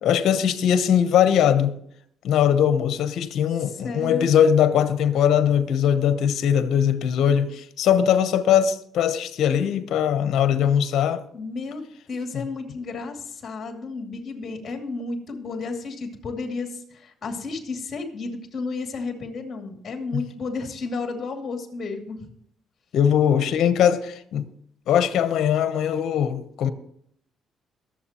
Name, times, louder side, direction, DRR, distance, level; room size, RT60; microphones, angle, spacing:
voice 1, 0.0-1.7 2.2-11.2 12.3-12.4 20.1-20.2 22.9-24.5 24.9-26.7, left 9 dB, 75° left, 0.9 m, -20 dB
voice 2, 3.6-4.3 11.3-22.3, left 3 dB, 50° left, 2.5 m, -32 dB
22.5 x 7.6 x 3.0 m
cardioid pair, 90°, 0 cm